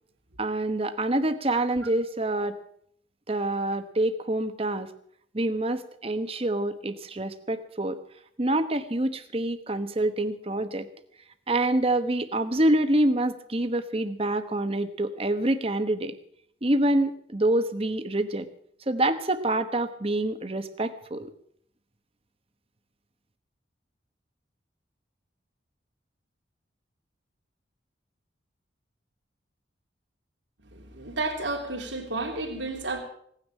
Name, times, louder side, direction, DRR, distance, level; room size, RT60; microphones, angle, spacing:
voice 1, 0.4-2.6 3.3-4.9 5.3-8.0 8.4-10.9 11.5-16.2 16.6-18.5 18.9-21.3, right 1 dB, 30° right, 10 dB, 1.1 m, -26 dB
voice 2, 30.7-33.0, right 2 dB, 80° right, -1 dB, 3.0 m, -31 dB
17.5 x 9.9 x 7.3 m, 0.67 s
head